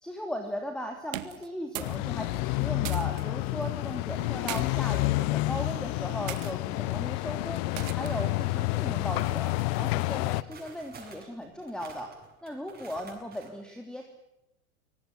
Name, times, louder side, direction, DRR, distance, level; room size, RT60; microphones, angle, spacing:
voice 1, 0.0-7.6 8.0-12.1 12.4-14.1, equal, ahead, 4 dB, 3.1 m, -37 dB
sound 1, 1.0-2.0 2.3-3.2 4.1-4.6 5.4-5.7 6.3-6.5 7.8-8.2, right 14 dB, 65° right, 2.0 m, -39 dB
sound 2, 1.8-10.4, left 20 dB, 45° left, 0.9 m, -29 dB
sound 3, 7.5-8.6 8.9-13.5, right 4 dB, 20° right, 7.5 m, -52 dB
24.5 x 18.5 x 9.9 m, 0.88 s
hypercardioid pair, 100°, 42 cm